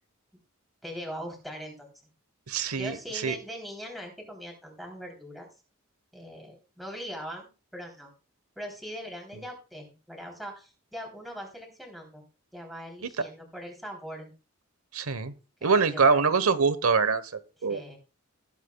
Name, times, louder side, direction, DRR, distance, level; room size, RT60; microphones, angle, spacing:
voice 1, 0.8-1.9 2.7-5.5 6.1-8.1 8.5-12.2 12.5-14.3 15.6-16.3 17.7-18.0, equal, ahead, 0 dB, 3.4 m, -41 dB
voice 2, 2.5-2.9 3.2-3.4 14.9-15.3 15.6-17.2 17.6-17.8, right 5 dB, 85° right, 14 dB, 1.1 m, -23 dB
19.5 x 8.4 x 2.3 m, 0.33 s
head